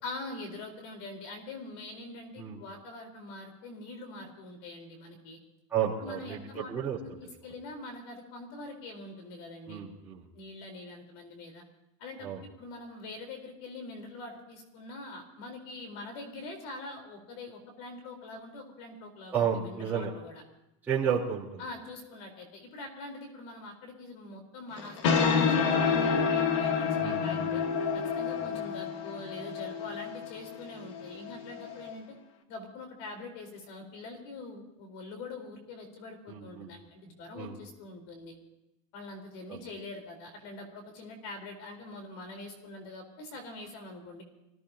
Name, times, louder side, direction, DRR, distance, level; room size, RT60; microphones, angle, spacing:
voice 1, 0.0-5.4 6.0-6.7 7.0-9.8 10.3-11.6 12.0-20.4 21.6-27.6 27.9-32.2 32.5-38.3 38.9-44.2, left 2 dB, 50° left, 5 dB, 4.2 m, -44 dB
voice 2, 5.7-7.0 9.7-10.2 12.2-12.4 19.3-20.1 20.9-21.6 27.0-27.5 36.3-36.7 37.3-37.5 39.5-39.6, right 8 dB, 10° right, -9 dB, 3.8 m, -32 dB
sound 1, 24.8-31.9, left 5 dB, 70° left, 2.6 m, -29 dB
27.5 x 17.0 x 2.9 m, 0.94 s
supercardioid pair, 180°, 16 cm